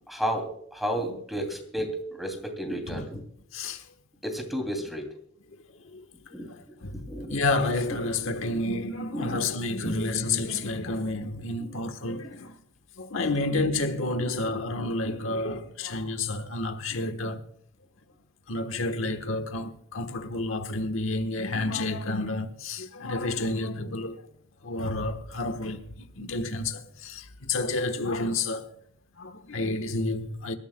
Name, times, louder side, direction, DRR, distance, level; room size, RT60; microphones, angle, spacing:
voice 1, 0.0-3.2 4.2-5.1 6.3-6.5 7.1-7.4 9.1-9.4 9.9-10.0, equal, ahead, 2.6 m, -32 dB
voice 2, 2.9-3.2 3.5-3.9 5.7-6.0 6.3-12.6 13.0-17.4 18.5-24.3 24.6-28.8 29.2-30.6, left 2 dB, 75° left, 1.2 m, -30 dB
26.5 x 13.5 x 2.2 m
head